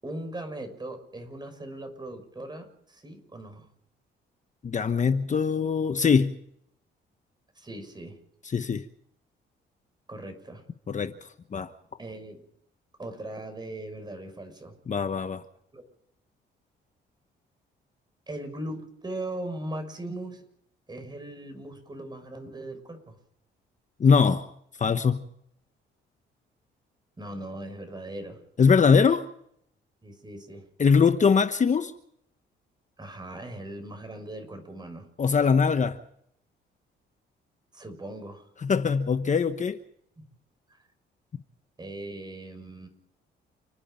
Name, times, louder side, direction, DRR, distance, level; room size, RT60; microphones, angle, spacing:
voice 1, 0.0-3.7 7.6-8.2 10.1-10.6 12.0-12.4 13.0-14.7 15.7-15.8 18.3-20.4 20.9-23.1 27.2-28.4 30.0-30.6 33.0-35.1 37.7-38.4 41.8-42.9, right 1 dB, 20° right, 6.4 m, -39 dB
voice 2, 4.6-6.4 8.4-8.8 10.9-11.7 14.9-15.4 24.0-24.5 24.8-25.2 28.6-29.3 30.8-31.9 35.2-36.0 38.6-39.8, left 5 dB, 40° left, 1.2 m, -22 dB
30.0 x 10.0 x 9.0 m
cardioid pair, 90°, 20 cm